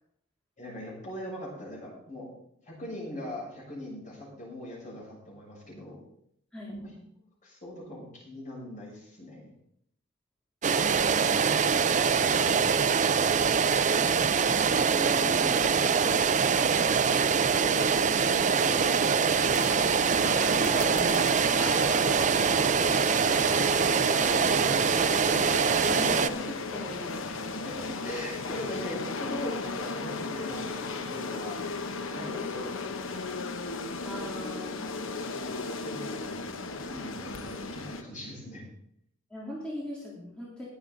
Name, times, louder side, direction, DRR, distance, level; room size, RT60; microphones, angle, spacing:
voice 1, 0.6-2.3 2.7-6.0 6.7-6.8 7.4-9.5 12.1-13.0 16.9-19.5 23.1-25.1 27.7-27.8 28.0-31.6 32.1-33.3 35.8-38.6, left 1 dB, 40° left, -3 dB, 7.1 m, -41 dB
sound 1, 10.6-26.3, right 6 dB, 35° right, 0.6 m, -24 dB
voice 2, 10.8-11.5 14.3-15.9 20.4-21.5 25.8-27.5 32.2-32.4 34.0-34.7 39.3-40.6, equal, 5° left, -7 dB, 3.4 m, -39 dB
sound 2, 19.3-38.0, left 3 dB, 70° left, 1.0 m, -36 dB
20.5 x 8.8 x 4.0 m, 0.72 s
head